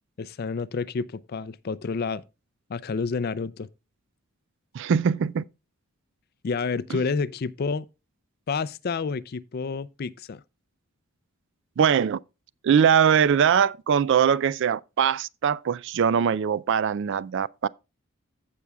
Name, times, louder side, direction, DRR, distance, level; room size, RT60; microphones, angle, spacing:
voice 1, 0.2-2.2 2.7-3.7 6.4-7.9 8.5-10.4, left 4 dB, 45° left, 0.4 m, -29 dB
voice 2, 4.7-5.4 11.8-12.2 12.6-17.7, right 7 dB, 60° right, 0.3 m, -22 dB
15.0 x 6.1 x 2.2 m
head